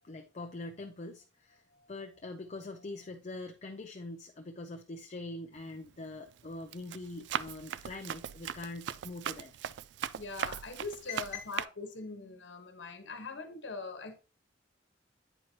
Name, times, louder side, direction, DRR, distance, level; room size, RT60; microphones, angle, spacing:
voice 1, 0.0-9.6 11.1-11.5, left 2 dB, 40° left, 0.5 m, -43 dB
Run, 5.6-5.9 6.4-11.6, right 9 dB, 70° right, 0.3 m, -39 dB
voice 2, 10.2-14.2, left 3 dB, 75° left, 1.1 m, -42 dB
8.8 x 4.5 x 2.7 m
head